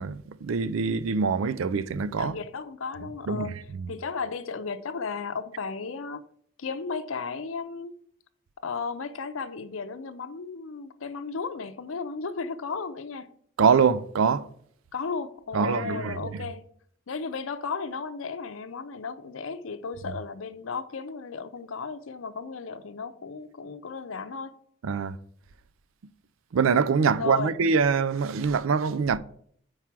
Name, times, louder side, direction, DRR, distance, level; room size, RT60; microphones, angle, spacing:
voice 1, 0.0-2.4 3.3-3.9 13.6-14.5 15.5-16.2 24.8-25.2 26.5-29.2, right 5 dB, 80° right, 0.4 m, -24 dB
voice 2, 2.2-3.6 3.9-6.2 6.6-7.9 8.6-13.3 14.9-16.7 17.1-24.6 27.0-27.5, left 5 dB, 80° left, 0.6 m, -34 dB
4.8 x 4.7 x 5.9 m
head